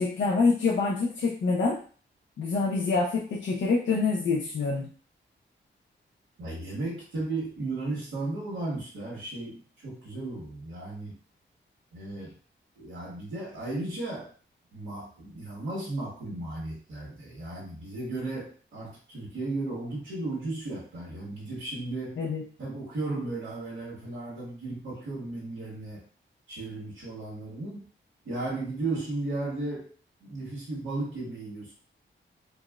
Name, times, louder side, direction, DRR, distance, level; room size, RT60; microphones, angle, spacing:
voice 1, 0.0-1.8 2.4-4.9 22.2-22.4, left 4 dB, 65° left, -1 dB, 0.5 m, -26 dB
voice 2, 6.4-11.2 11.9-12.3 12.7-14.3 14.7-22.2 22.6-26.0 26.5-27.9 28.2-29.9 30.2-31.7, right 2 dB, 90° right, -7 dB, 1.3 m, -35 dB
4.1 x 2.1 x 2.3 m, 0.41 s
wide cardioid pair, 180°, 20 cm